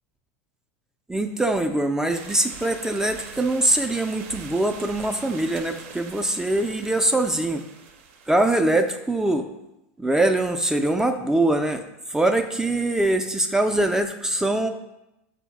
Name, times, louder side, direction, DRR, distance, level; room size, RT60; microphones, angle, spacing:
voice 1, 1.1-7.6 8.3-9.5 10.0-11.8 12.1-14.7, right 1 dB, 5° right, 5 dB, 0.3 m, -23 dB
sound 1, 2.1-8.8, right 6 dB, 70° right, 0.5 m, -43 dB
5.4 x 2.0 x 4.6 m, 0.91 s
hypercardioid pair, 100°, 7 cm